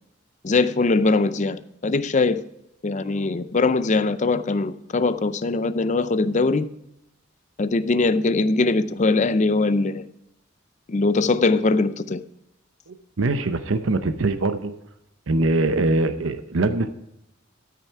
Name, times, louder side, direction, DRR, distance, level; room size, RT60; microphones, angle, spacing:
voice 1, 0.4-2.4 2.8-6.7 7.6-10.0 10.9-12.2, left 3 dB, 35° left, 0.5 m, -21 dB
voice 2, 12.9-14.7 15.3-16.9, right 2 dB, 75° right, 0.7 m, -23 dB
13.5 x 6.6 x 4.7 m
head